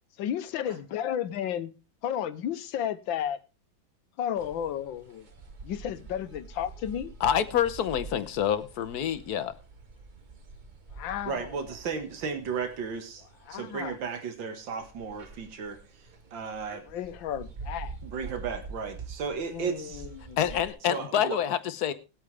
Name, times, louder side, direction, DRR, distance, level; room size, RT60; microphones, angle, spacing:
voice 1, 0.2-1.7 2.0-3.4 4.2-5.3 5.6-7.1 10.9-11.5 13.5-14.0 16.9-18.0 19.5-20.4, left 10 dB, 90° left, 1.6 m, -33 dB
sound 1, 4.4-20.7, right 4 dB, 35° right, 0.9 m, -46 dB
voice 2, 7.2-9.6 20.4-21.9, left 9 dB, 60° left, 1.2 m, -27 dB
voice 3, 11.3-13.2 13.5-15.8 16.3-16.8 18.0-20.1 20.9-21.4, right 5 dB, 75° right, 2.3 m, -34 dB
19.5 x 8.4 x 3.3 m
omnidirectional pair, 2.0 m